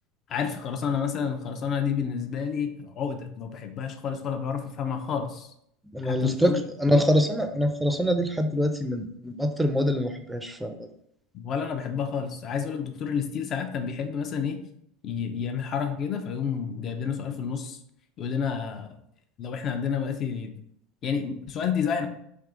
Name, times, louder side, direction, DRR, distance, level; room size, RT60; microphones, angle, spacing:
voice 1, 0.3-5.5 6.0-6.6 6.9-7.0 11.3-14.6 15.0-17.8 18.2-19.0 19.4-20.5 21.0-22.1, left 7 dB, 45° left, 6 dB, 0.6 m, -30 dB
voice 2, 5.9-10.8, equal, 5° right, 7 dB, 0.5 m, -25 dB
3.5 x 2.7 x 3.8 m, 0.73 s
hypercardioid pair, 90°, 0 cm